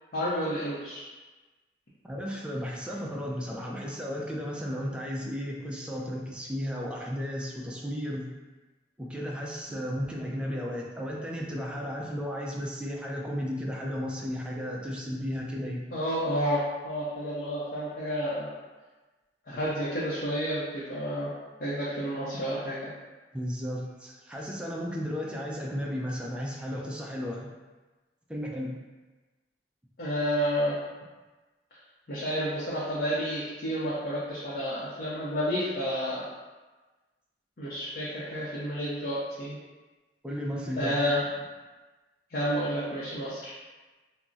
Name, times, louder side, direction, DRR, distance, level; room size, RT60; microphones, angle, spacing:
voice 1, 0.1-1.0 15.9-18.5 19.5-21.3 21.6-22.9 30.0-30.8 32.1-36.2 37.6-39.6 40.8-41.2 42.3-43.5, equal, 55° left, -9 dB, 0.6 m, -30 dB
voice 2, 2.0-8.3 9.0-15.9 23.3-27.5 28.3-28.8 40.2-40.9, equal, 5° right, -2 dB, 0.3 m, -34 dB
2.4 x 2.0 x 3.8 m, 1.2 s
head